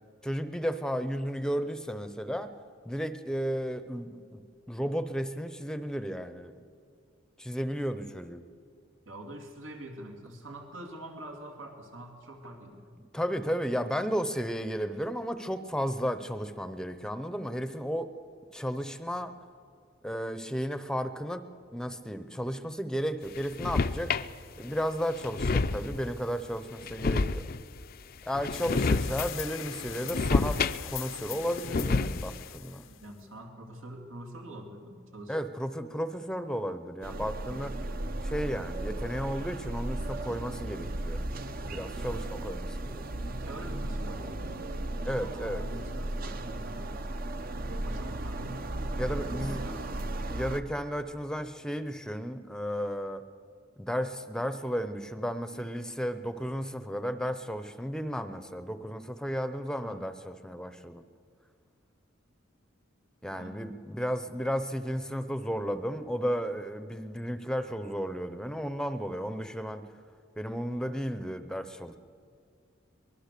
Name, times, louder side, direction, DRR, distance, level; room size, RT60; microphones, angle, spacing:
voice 1, 0.2-2.5 2.8-4.4 4.7-6.5 7.4-8.4 13.0-18.1 18.5-19.3 20.0-21.4 21.7-24.2 24.6-27.4 28.3-32.8 35.3-38.0 38.2-41.3 41.6-43.1 45.0-45.6 49.0-49.6 50.3-53.2 53.8-61.0 63.2-69.8 70.4-72.0, equal, 5° left, 11 dB, 0.7 m, -33 dB
voice 2, 9.1-12.9 33.0-35.5 41.9-42.2 43.3-47.1 47.7-48.5 49.2-49.8 59.8-60.0 63.2-63.6, right 1 dB, 85° right, 3 dB, 2.7 m, -45 dB
sound 1, 23.4-24.3 24.8-24.9 25.1-26.1 26.8-27.8 28.3-29.3 29.6-31.1 31.4-32.4, left 3 dB, 50° left, 0.5 m, -29 dB
sound 2, 28.5-33.2, left 10 dB, 80° left, 0.8 m, -41 dB
sound 3, 37.0-50.6, right 1 dB, 45° right, 0.8 m, -35 dB
23.5 x 21.0 x 6.8 m, 2.2 s
head